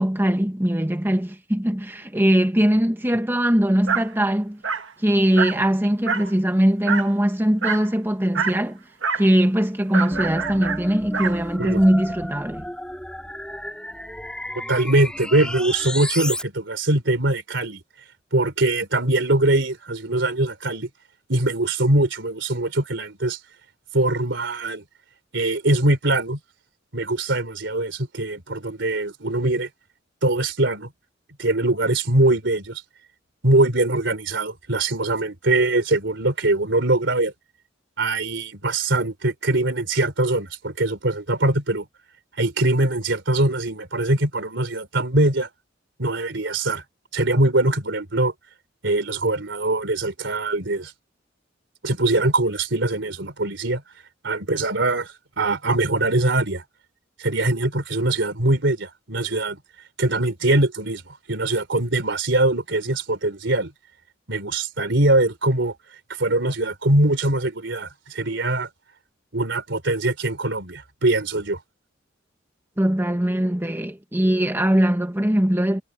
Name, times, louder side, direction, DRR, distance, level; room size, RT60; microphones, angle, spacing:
voice 1, 0.0-4.6 5.0-8.8 9.1-12.7 72.8-75.8, equal, 10° right, 1.5 m, -21 dB
Dog, 3.9-4.1 4.6-4.9 5.4-5.6 6.1-6.3 6.9-7.1 7.6-7.9 8.3-8.6 9.0-9.3 9.9-11.4, right 5 dB, 85° right, 1.4 m, -26 dB
sound 1, 10.1-16.4, left 1 dB, 5° left, 5.1 m, -33 dB
voice 2, 14.7-17.8 18.3-20.9 21.3-23.4 23.9-24.8 25.3-26.4 26.9-29.7 30.2-30.9 31.4-32.8 33.4-37.3 38.0-41.9 42.4-45.5 46.0-46.8 47.1-48.3 48.8-50.9 51.8-53.8 54.2-56.6 57.2-59.6 60.0-63.7 64.3-65.8 66.2-68.7 69.3-71.6, right 2 dB, 70° right, 3.8 m, -22 dB
head